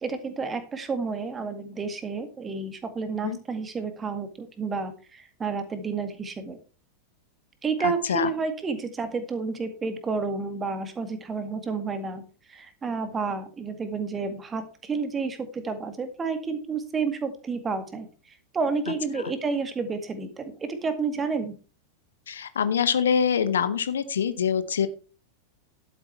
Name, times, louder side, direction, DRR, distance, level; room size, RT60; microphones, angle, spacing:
voice 1, 0.0-6.6 7.6-12.2 12.5-21.6, right 4 dB, 20° right, 9 dB, 2.0 m, -30 dB
voice 2, 7.8-8.3 22.3-24.9, left 7 dB, 65° left, 13 dB, 1.0 m, -25 dB
11.5 x 8.2 x 4.5 m, 0.35 s
figure-of-eight pair, 90°, 0 cm